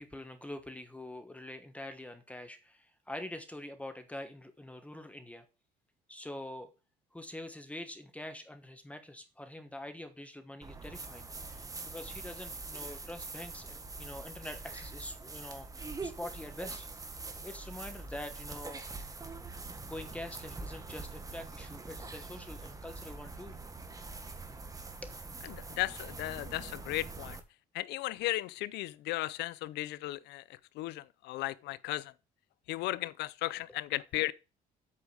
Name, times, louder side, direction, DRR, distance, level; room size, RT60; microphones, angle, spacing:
voice 1, 0.0-5.4 6.1-6.7 7.1-17.2 17.4-18.8 19.8-23.6 25.0-25.2 33.7-33.8, left 1 dB, 10° left, 1.1 m, -45 dB
sound 1, 10.6-27.4, right 3 dB, 20° right, 1.5 m, -44 dB
voice 2, 25.5-27.4 27.7-30.4 30.8-32.1 32.7-34.3, left 17 dB, 85° left, 0.6 m, -35 dB
8.6 x 4.9 x 6.2 m
cardioid pair, 110°, 17 cm